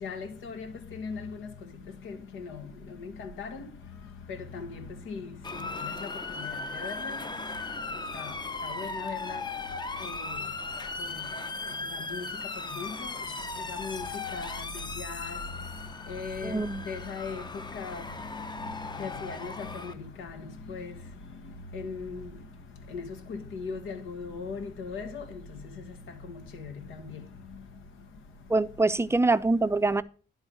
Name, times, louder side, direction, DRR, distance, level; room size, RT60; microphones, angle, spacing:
voice 1, 0.0-1.5 2.0-2.7 3.0-3.6 4.5-5.3 5.8-6.1 6.4-7.2 8.1-8.3 8.6-9.4 10.0-10.4 11.0-11.2 11.9-12.2 12.7-13.1 13.7-14.0 14.3-14.7 15.0-15.4 16.1-17.4 17.7-18.0 19.0-20.9 21.7-22.2 22.9-25.2 26.6-26.7 27.1-27.2, left 5 dB, 80° left, 1.6 m, -38 dB
Motor vehicle (road) / Siren, 5.4-19.9, left 3 dB, 20° left, 0.8 m, -37 dB
voice 2, 16.4-16.9 28.5-30.0, right 3 dB, 15° right, 0.5 m, -24 dB
10.5 x 3.9 x 7.4 m
cardioid pair, 90°, 20 cm